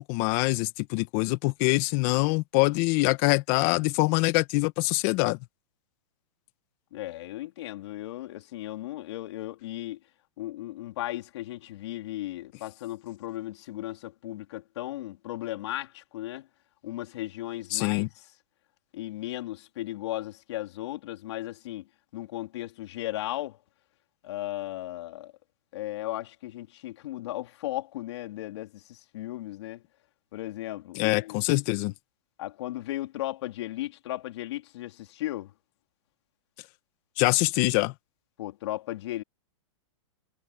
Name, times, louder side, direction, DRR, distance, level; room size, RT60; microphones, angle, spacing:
voice 1, 0.0-5.4 17.7-18.1 31.0-31.9 37.2-37.9, left 23 dB, 35° left, 1.6 m, -24 dB
voice 2, 6.9-10.0 10.4-16.5 16.8-18.1 18.9-23.6 24.2-25.3 25.7-29.8 30.3-31.4 32.4-35.5 38.4-39.2, left 15 dB, 55° left, 3.7 m, -36 dB
hypercardioid pair, 150°, 16 cm